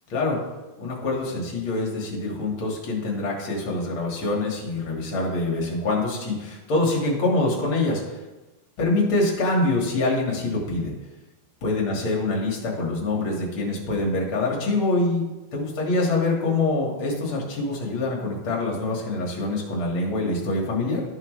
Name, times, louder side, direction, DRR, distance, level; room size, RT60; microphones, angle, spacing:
voice 1, 0.8-8.2 8.8-10.9 11.6-15.2 15.5-21.0, left 2 dB, 50° left, -2 dB, 1.6 m, -25 dB
12.5 x 5.8 x 3.1 m, 1.1 s
omnidirectional pair, 4.8 m